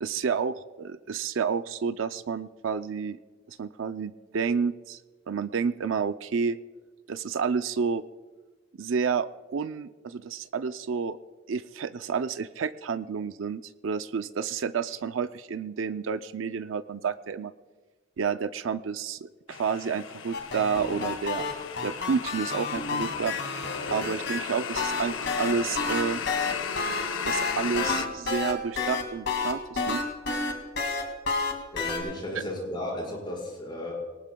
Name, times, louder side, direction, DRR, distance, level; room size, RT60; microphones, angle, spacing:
voice 1, 0.0-3.2 3.5-5.0 5.3-6.6 7.1-8.0 8.8-11.2 11.5-17.5 18.2-21.4 21.8-23.3 23.9-26.2 27.3-30.0, right 6 dB, 85° right, 11 dB, 0.5 m, -30 dB
sound 1, 19.5-28.1, left 7 dB, 80° left, 0.7 m, -35 dB
sound 2, 20.3-24.4 24.8-32.0, left 4 dB, 60° left, 2.3 m, -30 dB
voice 2, 31.7-33.9, left 1 dB, 25° left, -2 dB, 5.1 m, -34 dB
22.0 x 19.0 x 2.3 m, 1.3 s
head